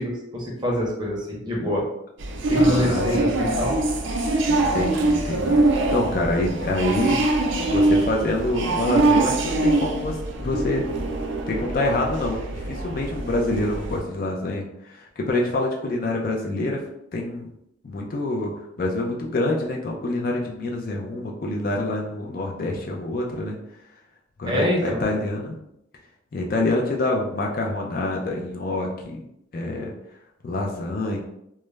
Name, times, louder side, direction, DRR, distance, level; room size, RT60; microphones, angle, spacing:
voice 1, 0.0-1.8 2.5-3.7 24.5-25.0, equal, 20° right, -3 dB, 0.6 m, -25 dB
sound 1, 2.2-14.0, right 2 dB, 65° right, 0.4 m, -23 dB
voice 2, 2.5-3.3 4.5-7.2 7.7-11.0 11.5-16.8 17.1-17.5 17.8-23.6 24.4-25.6 26.3-29.2 29.5-29.9 30.4-31.2, left 2 dB, 45° left, -1 dB, 0.4 m, -26 dB
2.3 x 2.0 x 3.1 m, 0.79 s
head